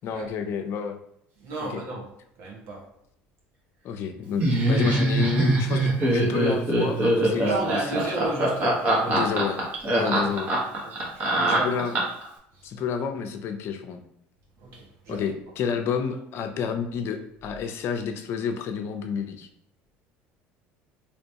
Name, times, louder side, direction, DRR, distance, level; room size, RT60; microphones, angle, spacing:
voice 1, 0.0-1.0 1.7-1.8 3.8-7.5 8.0-8.2 9.1-9.6 9.9-10.5 11.5-12.0 12.6-14.0 15.1-19.5, left 6 dB, 55° left, 7 dB, 0.5 m, -30 dB
voice 2, 1.4-2.1 2.4-2.8 7.3-9.4 10.2-10.4 10.8-11.8 12.5-12.7 14.6-15.2, right 2 dB, 65° right, -1 dB, 1.2 m, -34 dB
Laughter, 4.4-12.3, right 1 dB, 35° right, 1.2 m, -22 dB
3.3 x 3.0 x 2.8 m, 0.72 s
supercardioid pair, 100°, 5 cm